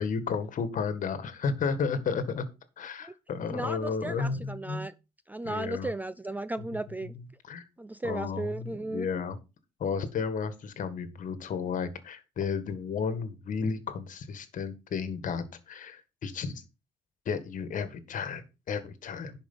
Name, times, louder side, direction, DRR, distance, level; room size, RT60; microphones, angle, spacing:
voice 1, 0.0-2.4 2.8-4.8 5.4-5.9 7.5-7.6 8.0-9.4 9.8-16.6 17.2-19.3, left 5 dB, 50° left, 1.7 m, -33 dB
voice 2, 3.5-4.9 5.3-7.1 7.8-9.1, right 2 dB, 10° right, 0.4 m, -35 dB
11.0 x 5.2 x 5.5 m
cardioid pair, 110°, 17 cm